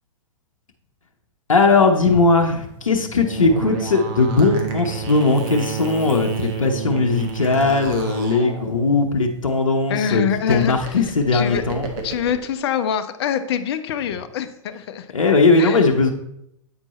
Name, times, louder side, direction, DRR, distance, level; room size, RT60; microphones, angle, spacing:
voice 1, 1.5-11.9 15.1-16.1, left 3 dB, 80° left, 2 dB, 0.9 m, -18 dB
sound 1, 2.0-9.6 10.3-12.3, right 6 dB, 40° right, 1.4 m, -31 dB
voice 2, 9.9-11.1 11.3-11.6 12.0-15.1 15.6-15.9, left 8 dB, 50° left, 10 dB, 0.7 m, -25 dB
8.6 x 4.5 x 4.2 m, 0.78 s
figure-of-eight pair, 110°, 17 cm